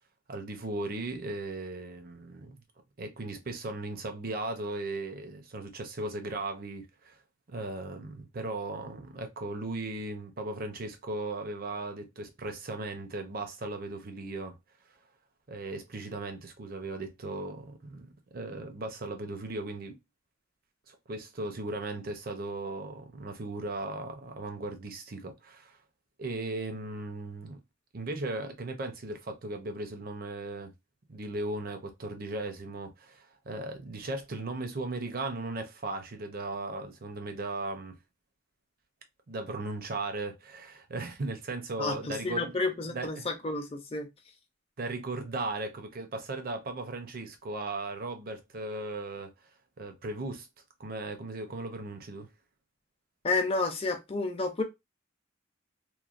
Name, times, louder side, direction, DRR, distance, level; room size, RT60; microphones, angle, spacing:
voice 1, 0.3-2.6 3.0-7.2 7.5-14.6 15.5-20.0 20.9-25.8 26.2-27.6 27.9-30.7 31.1-38.0 39.3-42.5 42.9-43.3 44.8-49.3 49.8-50.5 50.8-52.3, right 2 dB, 50° right, 0.6 m, -37 dB
voice 2, 41.8-44.1 53.2-54.6, left 3 dB, 30° left, 0.6 m, -30 dB
3.0 x 2.1 x 2.5 m
head